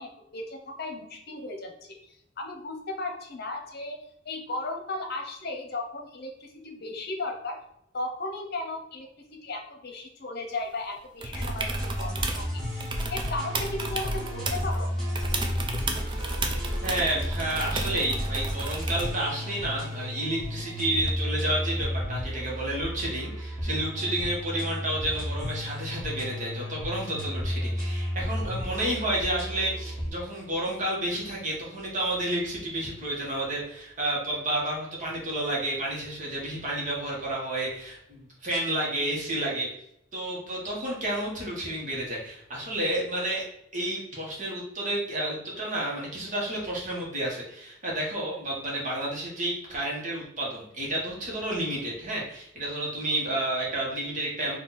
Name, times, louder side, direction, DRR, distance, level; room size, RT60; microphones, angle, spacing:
voice 1, 0.0-1.7 2.1-7.6 7.9-9.1 9.4-12.4 12.7-14.9, left 2 dB, 55° left, 3 dB, 0.9 m, -35 dB
sound 1, 11.2-12.5 12.8-14.8 15.1-19.2 21.1-21.2, right 2 dB, 25° right, 0.6 m, -32 dB
sound 2, 11.3-30.1, equal, 5° left, 1.6 m, -33 dB
voice 2, 16.8-39.7 40.1-43.4 43.7-54.6, right 1 dB, 40° right, -4 dB, 1.5 m, -30 dB
4.3 x 2.8 x 4.1 m, 0.75 s
head